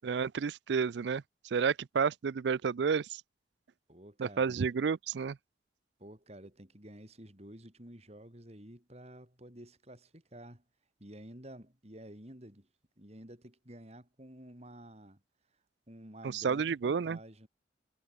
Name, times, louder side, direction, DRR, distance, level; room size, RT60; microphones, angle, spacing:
voice 1, 0.0-3.2 4.2-5.4 16.2-17.2, right 6 dB, 70° right, 0.4 m, -31 dB
voice 2, 3.9-4.6 6.0-10.6 11.0-12.7 13.0-15.2 15.9-17.5, right 1 dB, 35° right, 4.5 m, -51 dB
head